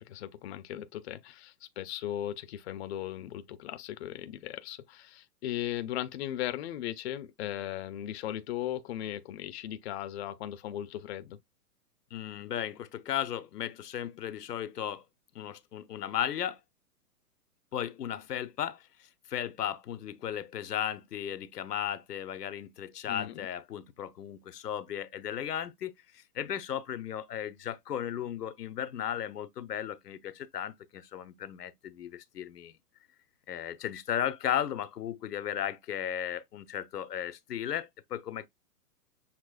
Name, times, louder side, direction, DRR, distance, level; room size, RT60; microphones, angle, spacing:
voice 1, 0.0-11.4 23.1-23.5, left 12 dB, 45° left, 0.5 m, -37 dB
voice 2, 12.1-15.0 15.3-16.6 17.7-18.9 19.3-32.7 33.5-38.5, left 10 dB, 85° left, 0.7 m, -35 dB
6.6 x 2.9 x 2.3 m
hypercardioid pair, 125°, 47 cm